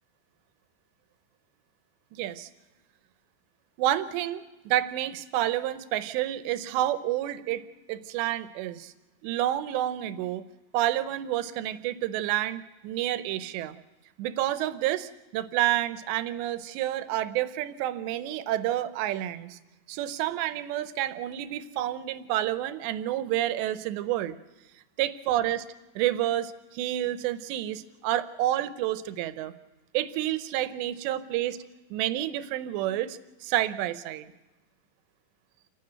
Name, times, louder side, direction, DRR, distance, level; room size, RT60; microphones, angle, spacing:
voice 1, 2.1-2.5 3.8-7.6 7.9-8.9 9.2-10.4 10.7-13.8 14.2-19.6 19.9-24.4 25.0-25.6 26.0-29.5 29.9-31.6 31.9-34.3, right 13 dB, 80° right, 14 dB, 2.9 m, -29 dB
28.0 x 12.0 x 8.9 m, 1.1 s
omnidirectional pair, 5.3 m